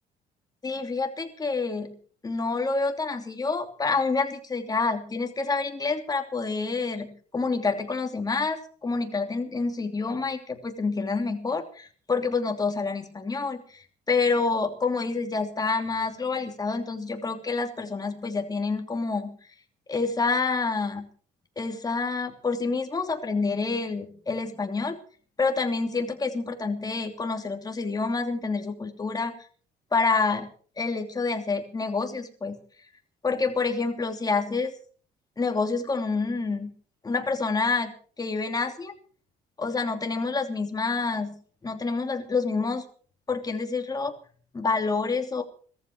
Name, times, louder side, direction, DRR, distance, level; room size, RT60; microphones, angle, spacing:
voice 1, 0.6-1.9 2.2-19.3 19.9-21.0 21.6-25.0 25.4-29.3 29.9-30.5 30.8-32.5 33.2-34.7 35.4-36.7 37.0-37.9 38.2-38.9 39.6-41.4 41.6-42.8 43.3-44.1 44.5-45.4, left 4 dB, 20° left, 5 dB, 2.9 m, -28 dB
18.5 x 14.0 x 4.7 m, 0.44 s
cardioid pair, 110°, 17 cm